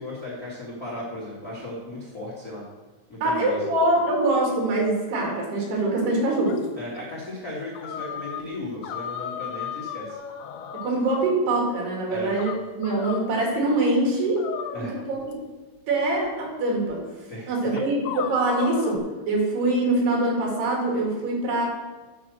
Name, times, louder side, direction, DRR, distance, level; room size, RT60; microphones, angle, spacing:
voice 1, 0.0-2.6 3.1-3.7 6.8-10.2 12.1-12.3 14.7-14.9 17.3-17.8, left 1 dB, 60° left, -7 dB, 0.9 m, -36 dB
voice 2, 3.2-6.6 10.7-14.4 15.1-15.4 15.9-17.0 17.5-21.7, right 2 dB, 60° right, -2 dB, 3.9 m, -24 dB
sound 1, 6.5-6.7 7.7-8.5 8.8-11.4 12.4-13.3 14.4-15.3 16.3-16.4 16.9-17.0 17.7-19.0, left 8 dB, 80° left, 2.9 m, -34 dB
9.8 x 5.0 x 6.3 m, 1.3 s
omnidirectional pair, 5.5 m